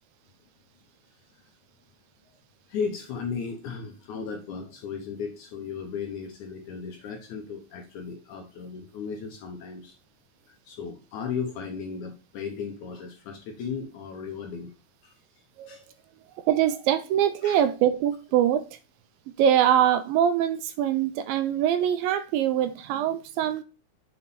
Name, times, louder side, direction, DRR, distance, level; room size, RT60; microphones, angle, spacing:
voice 1, 2.7-10.0 10.7-14.7 15.0-15.1 15.7-15.8 17.4-17.6, left 6 dB, 70° left, 1.9 m, -35 dB
voice 2, 16.5-18.7 19.4-23.6, right 10 dB, 80° right, 2.2 m, -23 dB
7.0 x 4.5 x 4.1 m
omnidirectional pair, 4.3 m